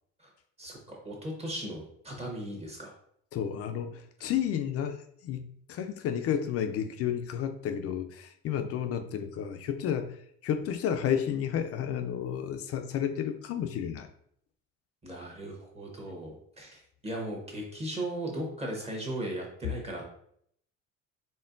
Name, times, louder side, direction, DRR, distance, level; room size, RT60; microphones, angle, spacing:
voice 1, 0.6-2.9 15.0-20.0, right 1 dB, 20° right, -1 dB, 1.1 m, -37 dB
voice 2, 3.3-5.0 5.2-14.1, left 9 dB, 55° left, 7 dB, 0.4 m, -31 dB
4.2 x 3.7 x 2.5 m, 0.67 s
cardioid pair, 150°, 30 cm